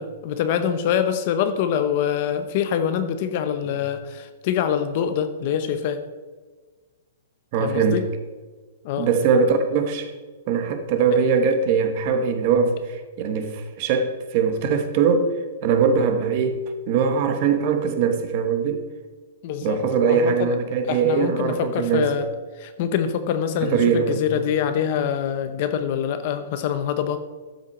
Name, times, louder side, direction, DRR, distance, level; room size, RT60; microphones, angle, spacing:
voice 1, 0.0-6.0 7.6-8.1 8.8-9.1 11.1-11.2 19.4-19.8 20.1-20.5 20.9-22.3 22.6-27.2, left 8 dB, 35° left, 10 dB, 0.7 m, -25 dB
voice 2, 7.5-8.0 9.0-10.1 10.5-15.3 15.6-18.8 19.6-22.1 23.6-24.2, right 6 dB, 30° right, 8 dB, 1.0 m, -21 dB
12.5 x 7.4 x 4.3 m, 1.4 s
hypercardioid pair, 175°, 0 cm